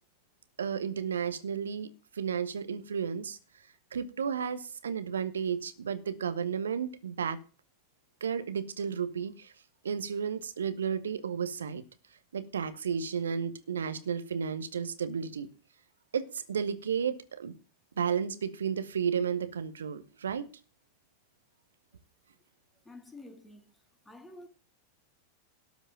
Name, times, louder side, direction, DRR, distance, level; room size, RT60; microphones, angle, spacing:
voice 1, 0.6-3.4 3.9-7.4 8.2-9.5 9.8-11.8 12.3-15.5 16.1-17.5 18.0-20.5, right 7 dB, 70° right, 1.2 m, -33 dB
voice 2, 22.8-23.7 24.0-24.5, left 2 dB, 10° left, 2.7 m, -49 dB
12.5 x 5.3 x 8.9 m
figure-of-eight pair, 90°, 0 cm